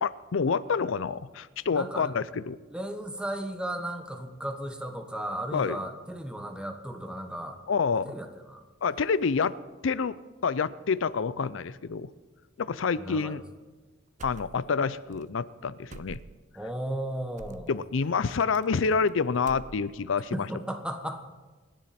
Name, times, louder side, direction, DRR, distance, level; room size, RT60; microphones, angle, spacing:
voice 1, 0.0-2.6 5.5-5.8 7.7-8.2 8.8-9.6 9.8-10.2 10.4-12.1 12.6-13.4 14.2-16.2 17.7-20.5, left 5 dB, 90° left, 16 dB, 0.5 m, -28 dB
voice 2, 1.7-2.1 2.7-7.6 8.0-8.6 13.0-13.4 16.5-17.8 20.3-21.2, right 1 dB, 5° right, 6 dB, 1.2 m, -35 dB
sound 1, 14.2-14.9 15.1-15.3 15.9-16.5 17.4-17.7 18.5-19.1 19.4-20.1, right 4 dB, 40° right, 0.4 m, -46 dB
28.0 x 10.5 x 4.3 m, 1.3 s
head